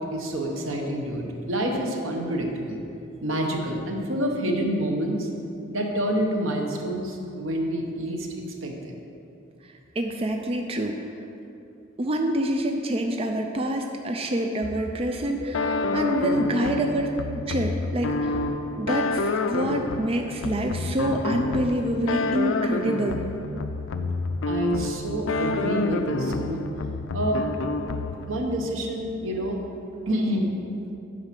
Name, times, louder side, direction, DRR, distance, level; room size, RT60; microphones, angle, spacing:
voice 1, 0.0-2.8 3.2-5.3 5.7-8.3 8.6-9.0 15.4-15.8 16.6-16.7 24.4-26.6 27.1-27.4 28.3-29.6 30.1-30.5, right 1 dB, 85° right, 2 dB, 1.1 m, -27 dB
voice 2, 9.6-11.0 12.0-17.1 17.5-18.4 18.8-23.2, right 1 dB, 30° right, 3 dB, 0.4 m, -27 dB
sound 1, 15.5-28.4, left 3 dB, 80° left, 0.4 m, -28 dB
8.7 x 4.9 x 5.9 m, 2.7 s
head